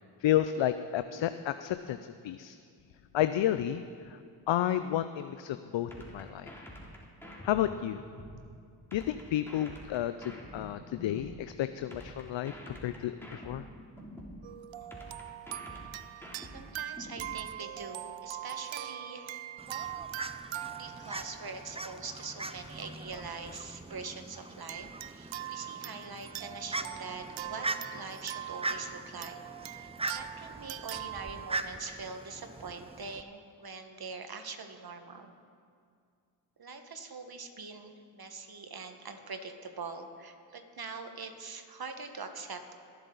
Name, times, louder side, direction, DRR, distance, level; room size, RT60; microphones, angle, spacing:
voice 1, 0.2-2.6 3.1-3.8 4.5-6.5 7.4-8.0 8.9-13.6, left 12 dB, 65° left, 11 dB, 0.6 m, -31 dB
sound 1, 5.9-8.4 8.9-11.4 11.9-14.4 14.9-17.4, equal, 5° left, 3.1 m, -47 dB
sound 2, 14.4-22.3 23.0-23.1 24.7-31.6, right 13 dB, 70° right, 0.5 m, -42 dB
voice 2, 16.5-19.3 20.8-29.4 29.7-35.3 36.6-42.7, right 4 dB, 45° right, 6 dB, 1.6 m, -43 dB
Fowl, 19.6-33.2, right 2 dB, 10° right, 0.6 m, -41 dB
21.5 x 8.1 x 4.0 m, 2.3 s
supercardioid pair, 40°, 49 cm